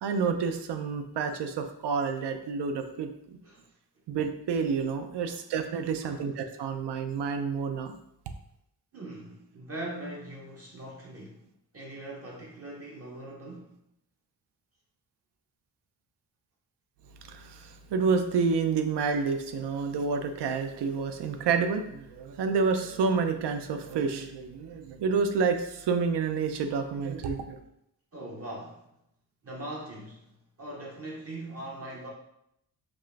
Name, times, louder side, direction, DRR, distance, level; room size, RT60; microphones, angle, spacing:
voice 1, 0.0-3.4 4.1-7.9 17.2-27.6, right 5 dB, 80° right, 7 dB, 0.5 m, -29 dB
voice 2, 8.9-11.4 11.7-13.7 28.1-28.8 29.4-30.3 30.6-32.1, right 1 dB, 35° right, -3 dB, 0.6 m, -41 dB
4.8 x 2.5 x 2.4 m, 0.78 s
wide cardioid pair, 135°, 41 cm